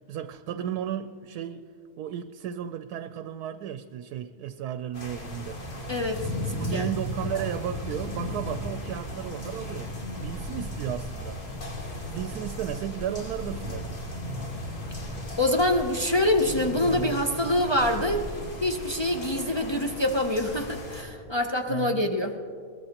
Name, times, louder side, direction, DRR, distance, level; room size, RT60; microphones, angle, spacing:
voice 1, 0.0-1.6 2.0-5.6 6.6-9.9 10.2-11.4 12.1-13.9 21.7-22.1, right 9 dB, 80° right, 10 dB, 1.1 m, -34 dB
sound 1, 4.9-21.0, left 1 dB, 65° left, 2.7 m, -36 dB
voice 2, 5.9-6.9 15.4-18.2 18.6-22.3, left 1 dB, 40° left, 2 dB, 0.3 m, -25 dB
22.0 x 19.5 x 2.9 m, 2.3 s
omnidirectional pair, 1.7 m